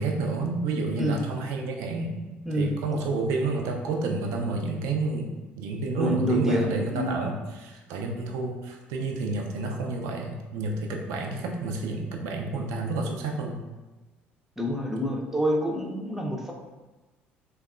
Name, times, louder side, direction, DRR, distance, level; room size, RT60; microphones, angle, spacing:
voice 1, 0.0-2.1 2.5-5.3 5.5-13.6, right 3 dB, 60° right, 2 dB, 0.4 m, -30 dB
voice 2, 6.0-7.2 14.6-16.5, equal, 5° right, -1 dB, 0.5 m, -27 dB
3.4 x 2.3 x 2.3 m, 1.2 s
figure-of-eight pair, 55°, 6 cm